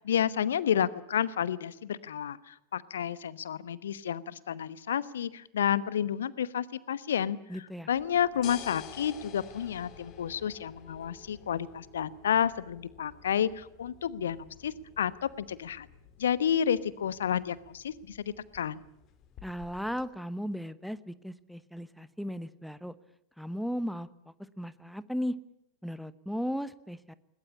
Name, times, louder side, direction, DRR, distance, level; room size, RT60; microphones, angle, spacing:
voice 1, 0.0-7.6 7.9-15.9 16.2-18.8, left 9 dB, 65° left, 18 dB, 1.1 m, -30 dB
voice 2, 7.5-7.9 19.4-22.9 23.4-25.4 25.8-27.1, equal, ahead, 16 dB, 1.0 m, -36 dB
sound 1, 7.9-20.1, left 9 dB, 35° left, 2.6 m, -51 dB
21.0 x 20.5 x 8.5 m, 0.82 s
figure-of-eight pair, 90°, 0 cm